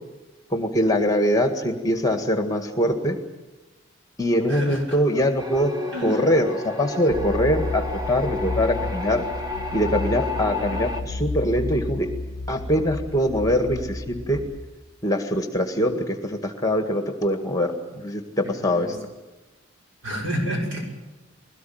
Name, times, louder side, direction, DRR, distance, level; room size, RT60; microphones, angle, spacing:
voice 1, 0.5-3.2 4.2-5.7 6.0-9.2 9.7-12.1 12.5-14.4 15.0-19.0, equal, 15° left, 6 dB, 1.8 m, -23 dB
voice 2, 4.5-4.8 5.9-6.2 18.6-19.0 20.0-20.9, equal, 70° right, 0 dB, 6.2 m, -29 dB
sound 1, 5.4-11.0, left 3 dB, 20° right, 1.8 m, -32 dB
sound 2, 7.1-14.6, left 2 dB, 50° right, 2.1 m, -32 dB
21.5 x 18.0 x 9.4 m, 1.1 s
head